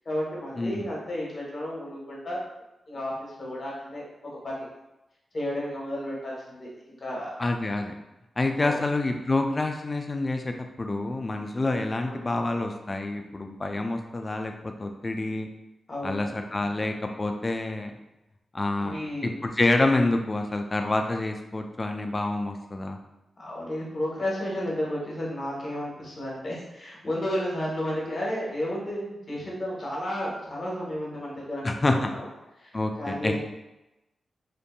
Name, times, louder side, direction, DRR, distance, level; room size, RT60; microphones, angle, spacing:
voice 1, 0.0-2.4 2.9-4.0 4.4-4.7 5.3-7.4 8.6-8.8 12.0-12.4 15.9-16.4 18.8-19.4 23.4-32.3 32.6-33.4, left 1 dB, 50° left, -4 dB, 1.0 m, -32 dB
voice 2, 0.6-0.9 7.4-7.9 8.4-15.5 16.0-17.9 18.5-23.0 31.6-32.1 32.7-33.3, left 2 dB, 35° left, 5 dB, 0.3 m, -27 dB
2.6 x 2.6 x 2.2 m, 0.96 s
cardioid pair, 50°, 0 cm